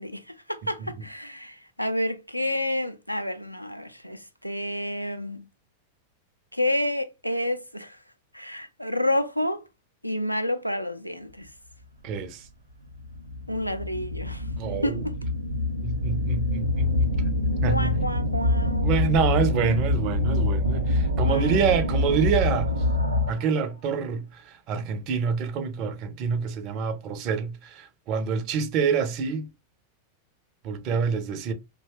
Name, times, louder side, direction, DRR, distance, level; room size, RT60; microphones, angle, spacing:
voice 1, 0.0-5.4 6.5-8.0 8.3-9.6 10.0-11.5 13.5-14.5 14.8-15.2 17.7-19.0 21.2-21.7, left 1 dB, 90° left, 0.3 m, -29 dB
voice 2, 12.0-12.4 14.6-15.0 15.8-17.1 17.6-17.9 18.8-22.7 23.3-29.5 30.6-31.5, right 6 dB, 40° right, 0.5 m, -27 dB
sound 1, 12.1-12.2 12.9-23.6, left 1 dB, 90° right, 0.7 m, -25 dB
2.6 x 2.1 x 3.1 m
figure-of-eight pair, 90°, 0 cm